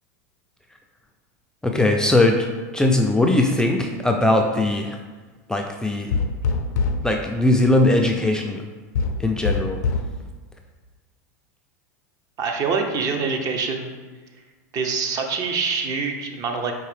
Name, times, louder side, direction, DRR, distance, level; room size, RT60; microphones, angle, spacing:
voice 1, 1.6-2.4 2.7-5.0 5.5-6.1 7.0-8.6 9.2-9.8, left 2 dB, 5° left, 2 dB, 0.3 m, -20 dB
sound 1, 6.1-7.1 8.9-10.2, left 4 dB, 80° left, 0.4 m, -23 dB
voice 2, 12.4-13.9 14.7-16.7, right 5 dB, 40° right, 4 dB, 0.6 m, -25 dB
4.7 x 2.6 x 3.3 m, 1.3 s
hypercardioid pair, 105°, 9 cm